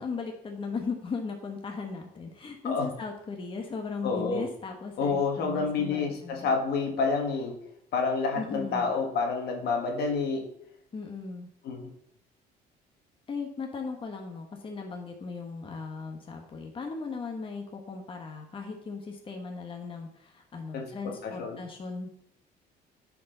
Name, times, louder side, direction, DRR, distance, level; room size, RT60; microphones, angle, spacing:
voice 1, 0.0-6.5 8.3-8.9 10.9-11.5 13.3-22.1, left 4 dB, 30° left, 3 dB, 1.2 m, -37 dB
voice 2, 4.0-4.5 5.0-7.6 7.9-10.5 11.6-11.9 20.7-21.6, left 4 dB, 70° left, 2 dB, 1.7 m, -29 dB
10.0 x 4.8 x 3.9 m, 0.72 s
cardioid pair, 110°, 17 cm